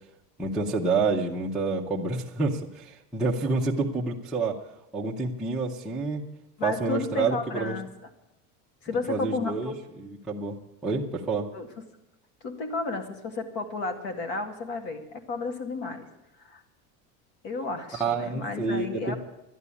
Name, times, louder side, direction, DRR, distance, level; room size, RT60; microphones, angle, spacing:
voice 1, 0.4-4.6 4.9-6.2 6.6-7.8 9.1-11.5 17.9-19.1, right 3 dB, ahead, -6 dB, 0.6 m, -28 dB
voice 2, 6.6-7.9 8.8-9.8 11.5-11.7 12.4-16.1 16.4-16.6 17.4-19.2, left 3 dB, 60° left, 8 dB, 2.2 m, -32 dB
12.5 x 11.0 x 8.3 m, 0.92 s
cardioid pair, 175°, 40 cm